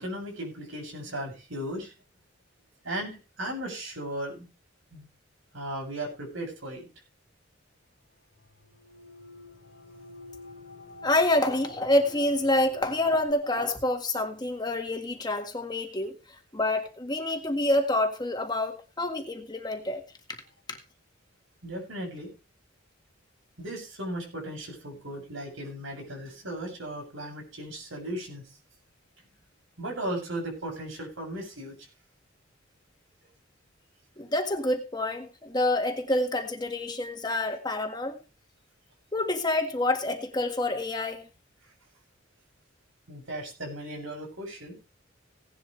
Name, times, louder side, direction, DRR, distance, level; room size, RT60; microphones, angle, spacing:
voice 1, 0.0-1.9 2.8-4.5 4.9-5.1 5.5-6.9 21.6-22.3 23.6-28.4 29.8-31.7 43.1-44.8, right 1 dB, 80° right, 1 dB, 7.5 m, -36 dB
sound 1, 8.6-13.3, left 2 dB, 80° left, 2.8 m, -46 dB
voice 2, 11.0-16.1 16.5-20.0 34.2-38.2 39.1-41.2, left 1 dB, 20° left, 5 dB, 1.8 m, -27 dB
17.5 x 11.0 x 3.3 m, 0.30 s
head